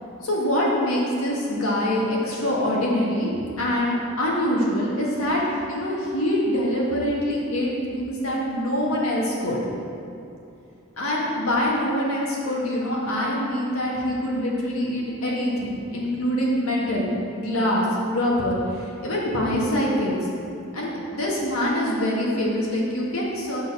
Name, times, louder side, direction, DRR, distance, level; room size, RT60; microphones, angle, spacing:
voice 1, 0.2-3.3 3.6-5.4 5.7-9.6 11.0-20.2 20.7-23.6, equal, 90° left, -4 dB, 1.7 m, -24 dB
9.1 x 4.1 x 6.2 m, 2.7 s
head